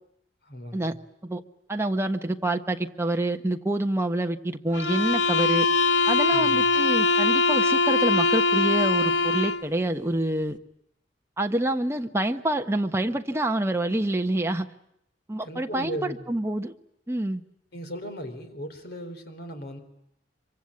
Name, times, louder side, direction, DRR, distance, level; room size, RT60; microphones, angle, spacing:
voice 1, 0.4-1.0 6.3-6.7 15.4-16.3 17.7-19.8, equal, 60° left, 7 dB, 3.9 m, -37 dB
voice 2, 1.7-5.7 6.1-10.6 11.4-14.7 15.3-16.7 17.1-17.4, right 1 dB, 15° right, 5 dB, 1.2 m, -27 dB
sound 1, 4.7-9.7, left 3 dB, 80° left, 1.1 m, -22 dB
25.0 x 24.0 x 8.7 m, 0.78 s
head